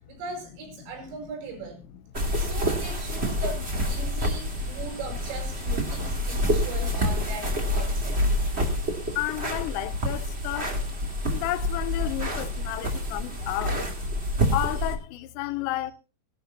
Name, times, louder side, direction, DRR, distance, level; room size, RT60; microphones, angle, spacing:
voice 1, 0.1-1.8 2.4-8.3 9.0-9.2, right 3 dB, 80° right, 7.5 m, -39 dB
voice 2, 1.9-2.3 2.7-3.3 4.1-4.9 5.9-6.7 7.4-7.5 8.3-8.5 9.2-10.8 11.3-13.8 14.5-15.9, left 16 dB, 85° left, 3.4 m, -33 dB
sound 1, 2.1-15.0, equal, 30° right, 1.2 m, -28 dB
21.0 x 11.5 x 2.7 m
omnidirectional pair, 5.8 m